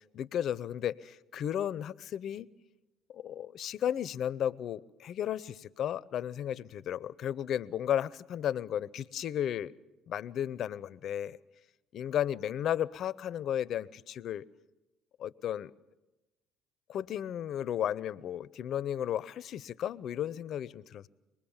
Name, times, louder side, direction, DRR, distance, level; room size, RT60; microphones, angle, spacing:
voice 1, 0.1-2.5 3.1-9.7 10.1-11.4 11.9-14.4 15.2-15.7 16.9-21.1, left 10 dB, 60° left, 19 dB, 0.7 m, -34 dB
25.0 x 20.0 x 7.2 m, 1.1 s
supercardioid pair, 80°, 0 cm